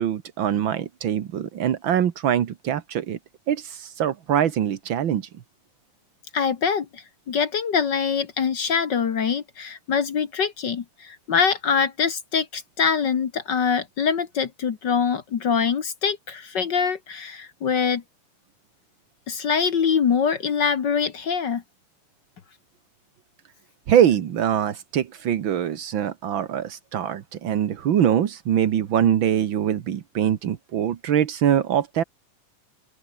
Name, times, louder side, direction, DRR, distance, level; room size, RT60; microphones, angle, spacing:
voice 1, 0.0-3.2 3.5-5.3 23.9-32.0, right 9 dB, 65° right, 1.2 m, -23 dB
voice 2, 6.3-18.0 19.3-21.6, left 6 dB, 55° left, 1.2 m, -24 dB
open air
omnidirectional pair, 3.9 m